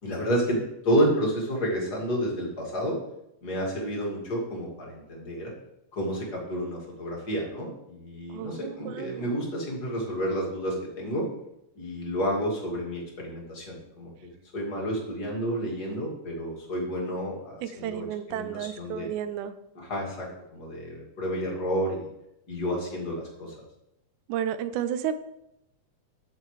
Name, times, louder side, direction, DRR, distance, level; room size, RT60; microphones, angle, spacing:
voice 1, 0.0-3.0 3.4-5.5 5.9-11.2 11.8-19.1 19.7-20.3 20.5-22.1 22.5-23.5, equal, 35° left, -2 dB, 2.4 m, -30 dB
voice 2, 8.3-9.4 17.6-19.6 24.3-25.1, right 10 dB, 85° right, 11 dB, 2.1 m, -32 dB
13.5 x 6.5 x 3.2 m, 0.83 s
omnidirectional pair, 3.4 m